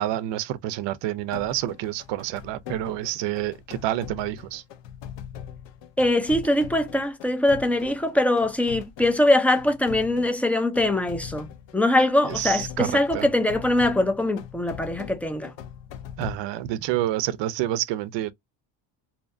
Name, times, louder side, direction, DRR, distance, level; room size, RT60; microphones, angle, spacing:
voice 1, 0.0-4.6 12.4-12.9 13.1-13.3 16.2-18.3, right 13 dB, 65° right, 0.5 m, -28 dB
sound 1, 1.3-16.4, left 9 dB, 70° left, 0.7 m, -41 dB
voice 2, 6.0-11.5 11.7-15.5, left 1 dB, 5° left, 0.4 m, -22 dB
2.8 x 2.1 x 2.5 m
supercardioid pair, 90°, 46 cm